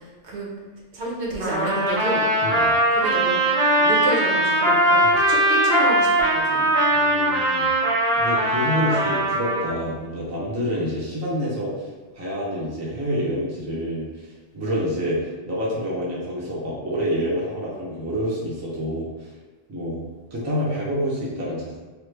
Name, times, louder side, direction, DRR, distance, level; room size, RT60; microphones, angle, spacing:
voice 1, 0.9-2.3 2.9-3.4 3.8-6.8, right 2 dB, 65° right, -3 dB, 1.0 m, -29 dB
Trumpet, 1.4-9.7, right 1 dB, 85° right, 1.5 m, -20 dB
voice 2, 6.9-7.7 8.1-11.9 12.2-19.3 19.7-20.0 20.3-21.8, equal, 20° right, -5 dB, 0.5 m, -27 dB
3.1 x 2.1 x 3.2 m, 1.3 s
omnidirectional pair, 1.2 m